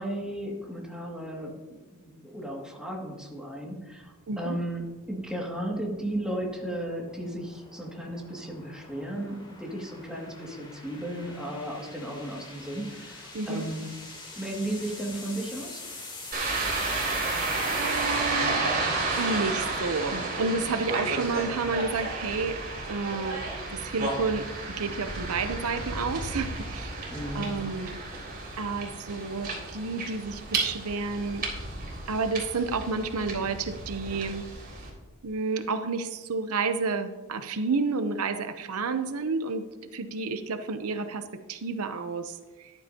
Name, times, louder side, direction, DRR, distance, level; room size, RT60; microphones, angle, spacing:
voice 1, 0.0-13.8 14.4-15.9 27.1-27.6, right 1 dB, 5° right, -3 dB, 2.1 m, -35 dB
sound 1, 3.9-20.2, left 3 dB, 20° left, 2.8 m, -45 dB
voice 2, 13.3-13.7 17.7-18.7 19.1-22.6 22.9-23.4 23.8-27.0 27.3-28.0 28.6-31.4 32.1-34.4 35.2-39.6 39.9-42.7, right 4 dB, 80° right, 9 dB, 0.7 m, -30 dB
sound 2, 16.3-34.9, right 3 dB, 45° right, 3.7 m, -32 dB
14.5 x 11.5 x 2.8 m, 1.2 s
head